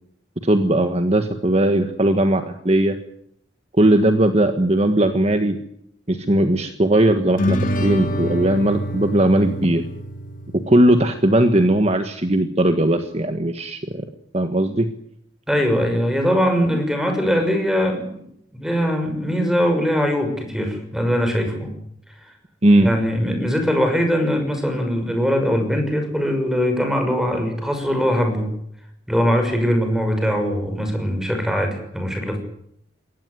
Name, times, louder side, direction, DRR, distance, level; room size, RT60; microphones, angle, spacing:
voice 1, 0.4-3.0 3.8-5.6 6.1-9.8 10.7-14.0 14.3-14.9 22.6-22.9, right 1 dB, 35° right, 7 dB, 1.6 m, -18 dB
sound 1, 7.4-11.0, equal, 45° left, 3.2 m, -25 dB
voice 2, 15.5-18.2 18.5-21.7 22.8-28.6 29.1-32.4, equal, 5° right, 5 dB, 6.2 m, -21 dB
22.5 x 18.0 x 9.7 m, 0.72 s
head